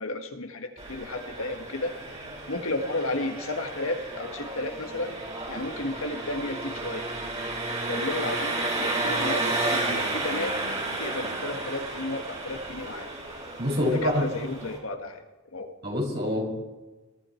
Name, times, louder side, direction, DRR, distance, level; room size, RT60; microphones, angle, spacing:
voice 1, 0.0-1.9 2.5-5.2 5.4-7.1 7.9-13.1 13.8-15.2 15.5-15.7, left 2 dB, 75° left, 5 dB, 1.8 m, -33 dB
Engine, 0.8-14.8, right 2 dB, 30° right, 5.4 m, -32 dB
voice 2, 13.6-14.2 15.8-16.4, left 1 dB, 50° right, -2 dB, 6.3 m, -26 dB
22.0 x 13.0 x 4.5 m, 1.2 s
head